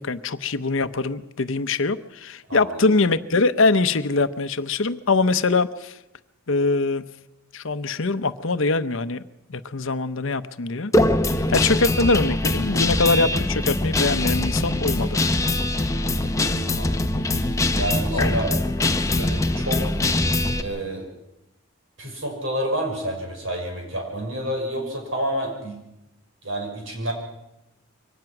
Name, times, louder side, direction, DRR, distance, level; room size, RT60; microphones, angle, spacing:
voice 1, 0.0-6.0 6.5-7.0 7.5-9.2 9.5-10.9 11.3-15.2 18.1-18.4, left 3 dB, 65° left, 12 dB, 0.8 m, -23 dB
voice 2, 2.5-2.9 16.7-17.2 17.7-18.5 19.2-19.9 20.5-21.1 22.0-25.8 26.4-27.1, right 1 dB, 65° right, 1 dB, 6.2 m, -29 dB
Guitar, 10.9-20.6, left 2 dB, 15° left, 0.8 m, -22 dB
23.5 x 18.5 x 6.0 m, 0.90 s
head